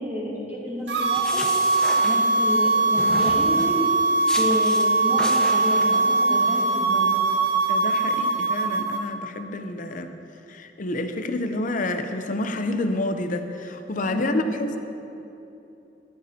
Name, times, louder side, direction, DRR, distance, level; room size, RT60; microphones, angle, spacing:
voice 1, 0.0-1.4 2.0-3.8 4.4-7.1 14.1-14.5, left 1 dB, 10° right, -9 dB, 2.5 m, -30 dB
sound 1, 0.9-2.6 3.0-3.8 4.3-4.9 5.2-6.0, equal, 5° left, 0.9 m, -34 dB
sound 2, 0.9-9.0, right 3 dB, 70° right, 0.8 m, -21 dB
voice 2, 7.7-10.1 10.5-14.8, left 2 dB, 45° left, 8 dB, 0.6 m, -28 dB
14.0 x 11.0 x 2.8 m, 2.9 s
head